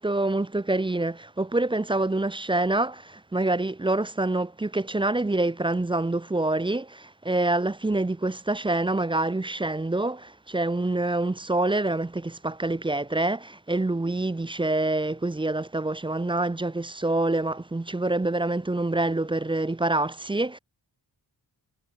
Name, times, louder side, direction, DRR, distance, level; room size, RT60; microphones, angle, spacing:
voice 1, 0.0-20.6, right 2 dB, 10° right, 0.4 m, -26 dB
wide cardioid pair, 155°, 45 cm